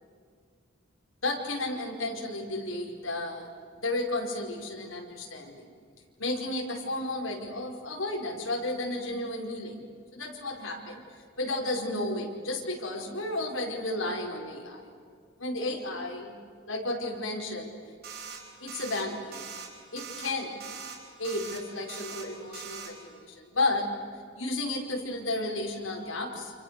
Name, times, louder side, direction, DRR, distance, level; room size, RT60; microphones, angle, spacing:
voice 1, 1.2-3.5 3.8-5.6 6.2-9.8 10.1-11.0 11.4-14.8 15.4-16.3 16.7-17.7 18.6-19.4 19.9-20.5 21.2-23.9 24.3-26.5, left 2 dB, 80° left, -1 dB, 5.0 m, -33 dB
sound 1, 18.0-18.4 18.7-19.0 19.3-19.7 20.0-20.3 20.6-21.0 21.2-21.6 21.9-22.3 22.5-22.9, right 6 dB, 50° right, 4.6 m, -41 dB
29.5 x 28.0 x 6.8 m, 2.1 s
head